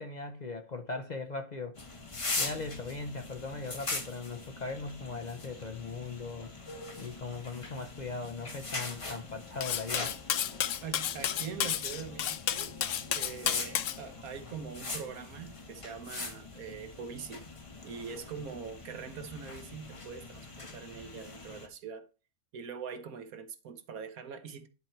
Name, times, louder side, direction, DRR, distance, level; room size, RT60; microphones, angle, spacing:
voice 1, 0.0-1.8 2.4-6.5 7.0-10.1, left 3 dB, 45° left, 0.6 m, -39 dB
sound 1, 1.8-21.7, left 3 dB, 25° left, 1.0 m, -42 dB
Cutlery silverware, 9.6-14.0, left 10 dB, 65° left, 1.0 m, -32 dB
voice 2, 10.8-12.7 13.1-17.4 17.8-22.1 22.5-24.7, right 6 dB, 85° right, 1.5 m, -43 dB
10.5 x 4.4 x 4.4 m
omnidirectional pair, 1.5 m